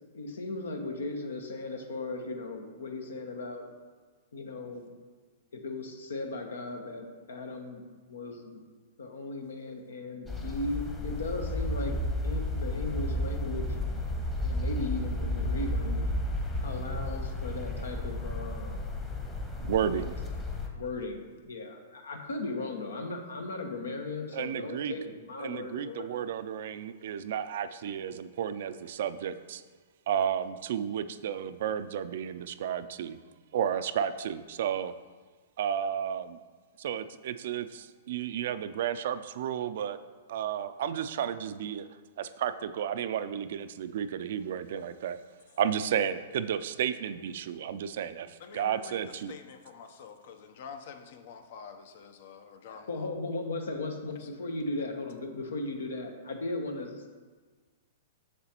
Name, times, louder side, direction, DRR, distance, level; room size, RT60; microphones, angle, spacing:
voice 1, 0.1-3.7 4.3-4.9 5.5-8.6 9.0-12.0 12.2-13.8 14.4-16.1 16.6-18.8 20.7-26.1 52.7-57.0, left 2 dB, 85° left, 4 dB, 1.0 m, -37 dB
sound 1, 10.3-20.7, left 1 dB, 15° left, 1.0 m, -32 dB
voice 2, 19.6-20.1 24.3-24.9 25.4-29.6 30.1-33.2 33.5-34.9 35.6-36.4 36.8-40.0 40.3-41.9 42.2-45.2 45.6-49.4, right 9 dB, 65° right, 12 dB, 0.3 m, -32 dB
voice 3, 48.4-49.0 49.3-53.1 54.2-54.3, left 6 dB, 60° left, 7 dB, 0.7 m, -47 dB
6.8 x 6.6 x 3.0 m, 1.4 s
hypercardioid pair, 120°, 0 cm